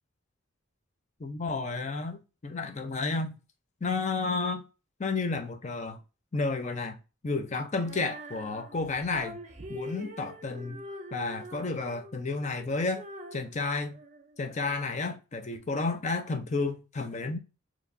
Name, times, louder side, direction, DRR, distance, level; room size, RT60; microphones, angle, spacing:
voice 1, 1.2-3.3 3.8-4.6 5.0-6.0 6.3-7.0 7.2-9.4 9.7-10.8 11.1-13.0 13.3-14.0 14.4-17.4, left 3 dB, 35° left, 0.5 m, -31 dB
Female singing, 7.8-14.8, equal, 35° right, 0.5 m, -45 dB
4.6 x 3.0 x 2.6 m
head